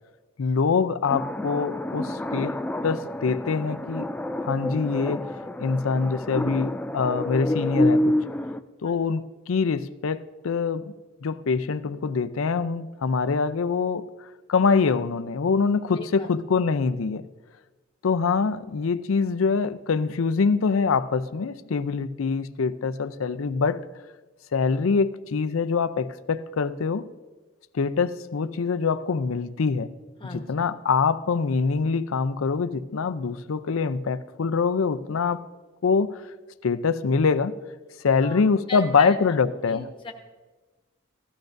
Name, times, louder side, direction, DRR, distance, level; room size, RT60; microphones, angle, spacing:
voice 1, 0.4-2.6 2.8-4.1 4.4-5.3 5.6-8.2 8.8-10.9 11.2-14.1 14.5-17.3 18.0-23.8 24.5-27.1 27.7-29.9 30.3-35.4 35.8-36.3 36.6-37.5 38.0-39.9, left 5 dB, 90° left, 0.5 m, -24 dB
sound 1, 1.1-8.6, left 1 dB, 5° left, 0.3 m, -28 dB
voice 2, 15.9-16.3 30.2-30.7 38.1-38.4 38.7-39.4 39.7-40.1, left 2 dB, 25° left, 1.2 m, -37 dB
17.0 x 13.0 x 2.6 m
head